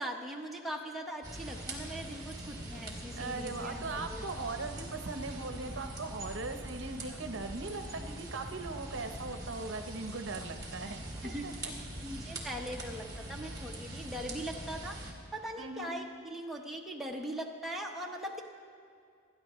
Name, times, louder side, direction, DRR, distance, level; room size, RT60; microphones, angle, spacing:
voice 1, 0.0-3.8 4.1-4.2 7.1-7.2 10.8-11.5 12.0-15.0 15.3-18.4, equal, ahead, -1 dB, 0.9 m, -40 dB
sound 1, 1.2-15.1, right 1 dB, 20° right, 1.9 m, -43 dB
voice 2, 3.2-11.7 15.6-16.0, right 3 dB, 60° right, 7 dB, 0.8 m, -39 dB
29.5 x 10.0 x 3.1 m, 2.4 s
head